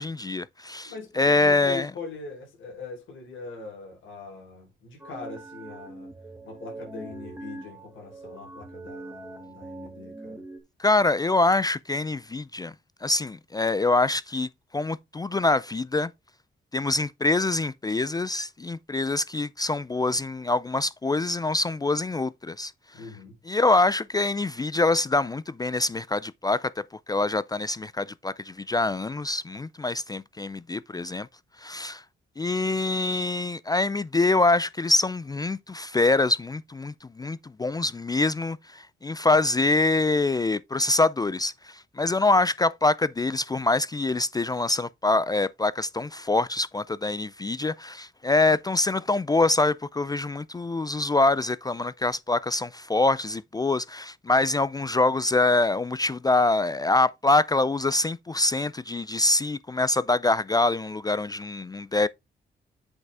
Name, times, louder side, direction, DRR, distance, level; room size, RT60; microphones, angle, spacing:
voice 1, 0.0-1.9 10.8-12.7 13.0-16.1 16.7-22.7 23.5-31.3 31.6-32.0 32.4-62.1, left 2 dB, 20° left, 0.4 m, -25 dB
voice 2, 0.8-6.1 6.4-10.4 22.9-23.4, left 4 dB, 90° left, 4.1 m, -41 dB
sound 1, 5.0-10.6, right 2 dB, 10° right, 2.1 m, -42 dB
8.0 x 6.0 x 3.4 m
cardioid pair, 90°, 19 cm